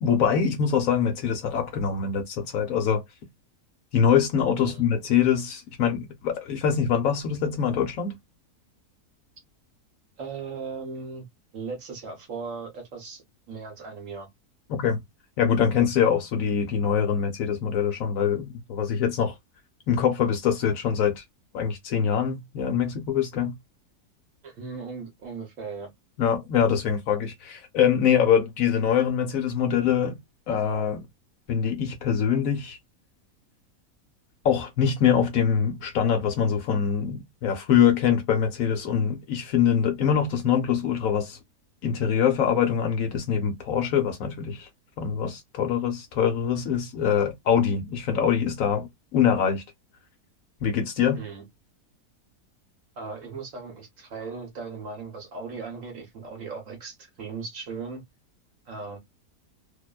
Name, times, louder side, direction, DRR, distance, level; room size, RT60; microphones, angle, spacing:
voice 1, 0.0-3.0 3.9-8.1 14.7-15.0 15.4-19.3 19.9-21.2 21.5-23.5 26.2-30.2 30.5-31.0 31.5-32.8 34.4-41.4 41.8-44.7 45.0-49.6 50.6-51.2, left 8 dB, 65° left, 0.9 m, -24 dB
voice 2, 10.2-11.2 11.5-14.3 24.4-25.9 51.1-51.4 53.0-58.0 58.7-59.0, right 5 dB, 60° right, 1.1 m, -37 dB
2.7 x 2.1 x 2.2 m
omnidirectional pair, 1.7 m